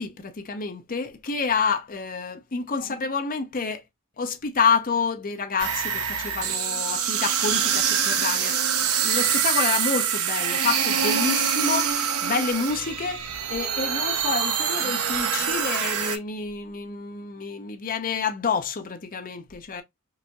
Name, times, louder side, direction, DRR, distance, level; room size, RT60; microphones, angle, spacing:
voice 1, 0.0-3.8 4.2-19.8, left 5 dB, 40° left, 0.7 m, -28 dB
sound 1, 5.6-16.2, right 8 dB, 75° right, 0.8 m, -25 dB
4.8 x 2.7 x 2.2 m
head